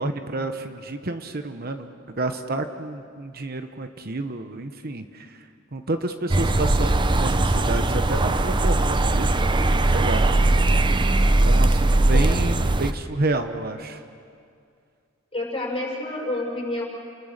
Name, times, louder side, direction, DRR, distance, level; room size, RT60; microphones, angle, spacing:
voice 1, 0.0-5.4 5.7-9.5 9.8-10.2 11.4-14.0, right 2 dB, 50° right, 7 dB, 1.0 m, -30 dB
sound 1, 6.3-12.9, right 2 dB, 25° right, 0.7 m, -20 dB
voice 2, 15.3-16.9, left 1 dB, 30° left, -1 dB, 5.4 m, -29 dB
29.5 x 21.0 x 6.7 m, 2.3 s
head